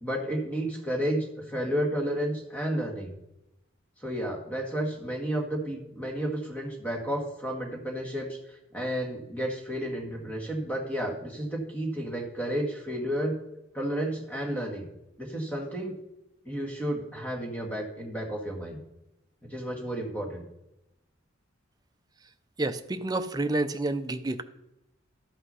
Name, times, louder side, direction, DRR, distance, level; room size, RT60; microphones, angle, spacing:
voice 1, 0.0-3.1 4.0-13.4 13.7-14.9 15.2-16.0 16.5-18.8 19.4-20.5, right 1 dB, 10° left, 0 dB, 1.7 m, -32 dB
voice 2, 22.6-24.4, right 2 dB, 20° right, 9 dB, 0.5 m, -29 dB
12.5 x 5.7 x 5.5 m, 0.90 s
head